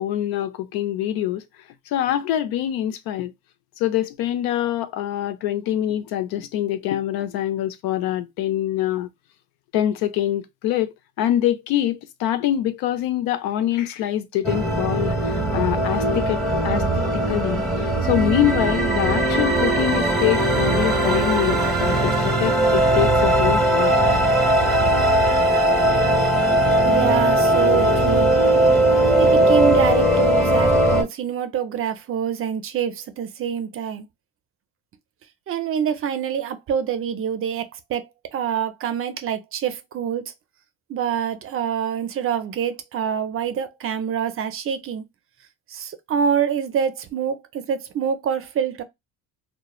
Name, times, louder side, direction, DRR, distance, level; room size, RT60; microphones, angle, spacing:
voice 1, 0.0-1.4 1.9-3.3 3.8-9.1 9.7-10.9 11.2-16.8 17.1-24.0, left 12 dB, 85° left, 0.6 m, -24 dB
sound 1, 14.4-31.0, right 1 dB, ahead, 1.0 m, -19 dB
voice 2, 26.8-28.4 29.1-34.1 35.5-40.3 40.9-45.1 45.7-48.8, right 8 dB, 40° right, 0.5 m, -26 dB
3.0 x 2.2 x 2.3 m
cardioid pair, 135°, 35 cm